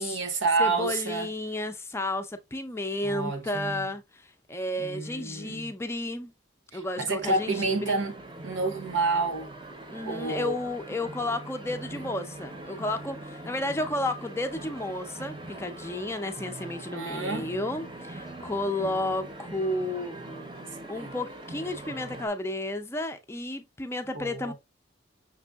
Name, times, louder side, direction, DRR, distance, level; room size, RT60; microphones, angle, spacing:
voice 1, 0.0-1.3 3.0-3.9 4.8-5.7 6.7-8.1 8.4-9.5 10.1-10.6 16.9-17.5 20.6-21.3 24.1-24.5, right 3 dB, 75° right, 0.9 m, -29 dB
voice 2, 0.6-6.3 6.7-8.0 9.9-20.5 20.9-24.5, left 1 dB, 15° left, 0.4 m, -32 dB
sound 1, 7.2-22.3, right 2 dB, 25° right, 0.7 m, -42 dB
5.9 x 3.5 x 2.3 m
head